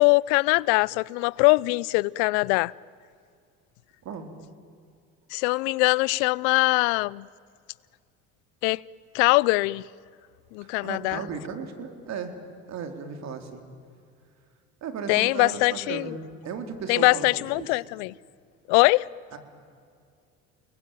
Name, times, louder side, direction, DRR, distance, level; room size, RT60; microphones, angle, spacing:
voice 1, 0.0-2.7 5.3-7.3 8.6-8.8 9.1-9.8 10.5-11.2 15.1-16.0 16.9-18.1 18.7-19.1, left 25 dB, 80° left, 0.6 m, -22 dB
voice 2, 10.6-12.4 12.7-13.6 14.8-16.2 16.4-17.7 19.3-19.4, right 6 dB, 50° right, 4.0 m, -35 dB
29.5 x 21.0 x 9.1 m
supercardioid pair, 90°, 33 cm